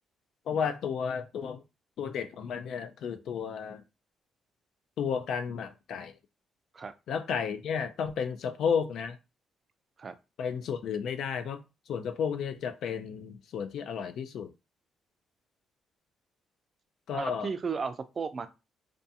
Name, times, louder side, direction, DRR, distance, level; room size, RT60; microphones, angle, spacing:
voice 1, 0.5-1.6 2.0-3.8 5.0-6.2 7.1-9.2 10.4-14.5 17.1-17.5, left 7 dB, 70° left, 0.3 m, -32 dB
voice 2, 17.1-18.5, right 5 dB, 40° right, 0.3 m, -34 dB
2.4 x 2.3 x 2.7 m
cardioid pair, 90°, 0 cm